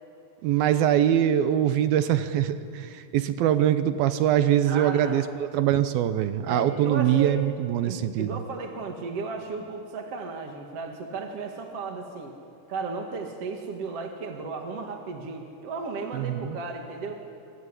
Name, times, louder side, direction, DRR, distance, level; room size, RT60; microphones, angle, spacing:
voice 1, 0.4-8.4 16.1-16.6, right 10 dB, 75° right, 11 dB, 2.6 m, -23 dB
voice 2, 4.7-5.2 6.5-7.4 7.9-12.4 12.7-17.2, right 4 dB, 45° right, 2 dB, 2.4 m, -35 dB
24.5 x 24.5 x 9.9 m, 2.4 s
omnidirectional pair, 4.5 m